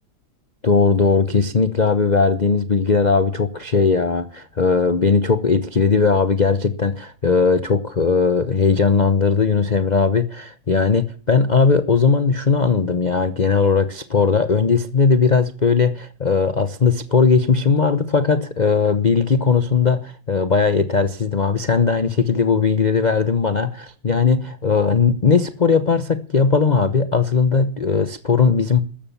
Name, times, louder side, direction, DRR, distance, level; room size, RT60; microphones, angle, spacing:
voice 1, 0.6-28.8, left 5 dB, 55° left, 12 dB, 0.4 m, -18 dB
14.0 x 13.0 x 7.2 m, 0.38 s
omnidirectional pair, 2.3 m